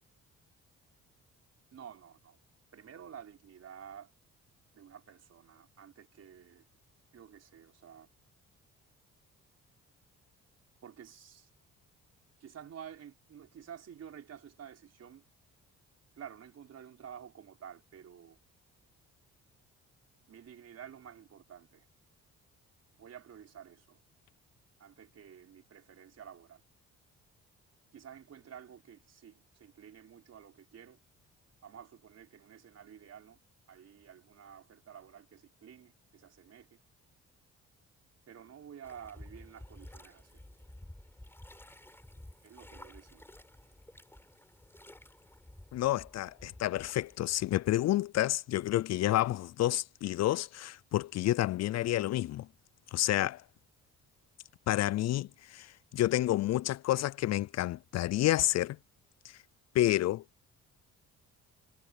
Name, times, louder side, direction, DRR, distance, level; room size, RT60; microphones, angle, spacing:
voice 1, 1.7-2.4 2.7-4.1 4.7-6.7 7.1-8.1 10.8-11.5 12.4-15.2 16.1-18.4 20.3-21.9 23.0-24.0 24.8-26.6 27.9-31.0 31.6-33.4 33.7-36.8 38.3-40.3 42.4-43.2, right 8 dB, 55° right, 4.6 m, -51 dB
sound 1, 38.8-47.5, left 1 dB, 10° left, 4.6 m, -53 dB
voice 2, 45.7-52.5 52.9-53.4 54.7-55.7 55.9-58.8 59.7-60.2, left 14 dB, 60° left, 0.4 m, -29 dB
cardioid pair, 90°, 30 cm